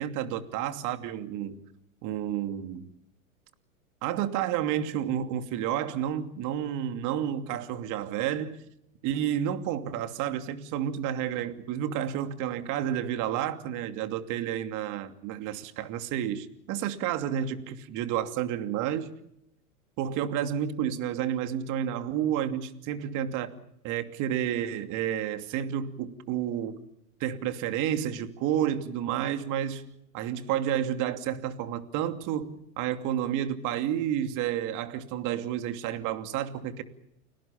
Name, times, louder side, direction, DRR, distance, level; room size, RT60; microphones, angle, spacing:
voice 1, 0.0-1.6 2.0-2.9 4.0-8.6 9.0-19.1 20.0-23.6 23.8-26.8 27.2-29.8 30.1-36.8, right 10 dB, 45° right, 2.8 m, -30 dB
30.0 x 19.0 x 7.2 m
hypercardioid pair, 115°, 43 cm